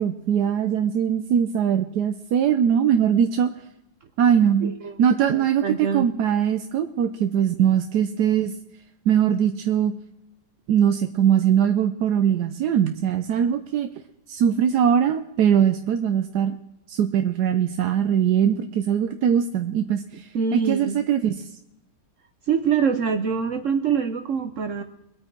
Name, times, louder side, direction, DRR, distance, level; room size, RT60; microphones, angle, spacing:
voice 1, 0.0-3.5 4.2-4.7 5.0-8.5 9.1-9.9 10.7-13.9 14.3-16.6 16.9-21.4, right 8 dB, 80° right, 8 dB, 1.3 m, -21 dB
voice 2, 4.6-4.9 5.3-6.1 20.3-21.0 22.5-24.8, right 6 dB, 60° right, 8 dB, 1.0 m, -24 dB
22.0 x 8.8 x 4.5 m, 0.88 s
omnidirectional pair, 1.7 m